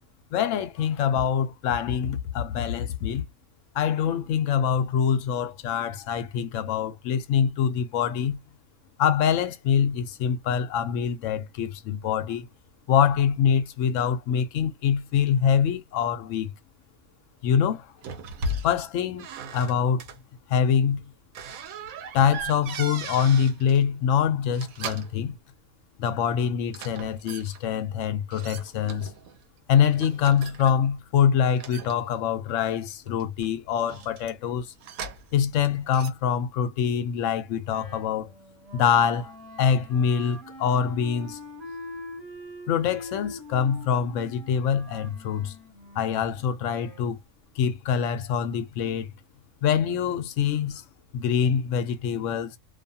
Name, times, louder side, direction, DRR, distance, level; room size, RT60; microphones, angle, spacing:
voice 1, 0.3-3.3 3.7-8.4 9.0-12.5 12.9-16.5 17.4-17.9 18.6-19.3 19.5-20.0 20.5-21.0 22.1-25.4 26.0-29.1 29.7-34.7 35.3-38.3 38.7-41.4 42.7-45.5 46.0-47.2 47.6-49.1 49.6-50.8 51.1-52.6, left 8 dB, 70° left, 0.9 m, -24 dB
sound 1, 18.0-18.9 19.2-20.2 21.3-23.8 24.4-25.2 26.7-27.6 28.3-29.4 29.8-30.9 31.5-32.5 33.1-35.4 35.6-36.1, right 2 dB, 80° right, 1.1 m, -37 dB
Wind instrument woodwind instrument, 37.7-47.1, left 1 dB, ahead, 1.2 m, -43 dB
2.5 x 2.3 x 2.6 m
omnidirectional pair, 1.4 m